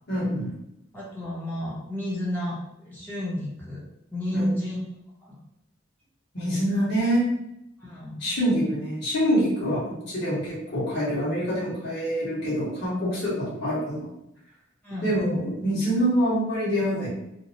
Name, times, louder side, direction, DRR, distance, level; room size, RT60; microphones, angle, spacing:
voice 1, 0.1-0.5 4.3-4.5 6.3-7.3 8.2-14.1 15.0-17.1, equal, 60° left, -8 dB, 1.5 m, -25 dB
voice 2, 0.9-3.8 4.1-4.8 7.8-8.2 14.8-15.1, equal, 10° left, -7 dB, 0.6 m, -31 dB
2.9 x 2.0 x 2.7 m, 0.82 s
head